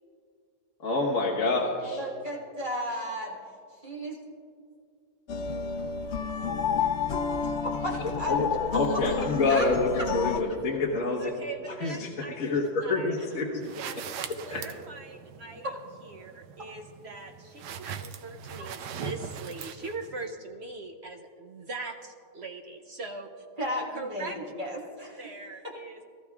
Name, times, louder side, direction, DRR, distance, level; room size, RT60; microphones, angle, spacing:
voice 1, 0.8-2.0 8.3-8.5 8.7-11.3 11.8-12.1 12.4-13.8 14.5-14.6, left 3 dB, 50° left, -3 dB, 1.7 m, -27 dB
voice 2, 1.9-3.4 3.8-4.2 7.6-8.3 8.7-8.8 9.5-9.7 13.2-13.6 18.6-18.7 23.6-25.2 25.6-25.7, equal, 30° right, -3 dB, 1.8 m, -34 dB
sound 1, 5.3-10.4, left 6 dB, 75° left, 0.6 m, -30 dB
voice 3, 11.2-12.5 12.8-13.2 13.8-23.4 23.8-24.4 25.2-26.0, right 3 dB, 55° right, 4 dB, 0.8 m, -41 dB
sound 2, 13.6-20.2, right 7 dB, 85° right, 1.3 m, -41 dB
22.0 x 13.5 x 2.4 m, 2.3 s
omnidirectional pair, 1.8 m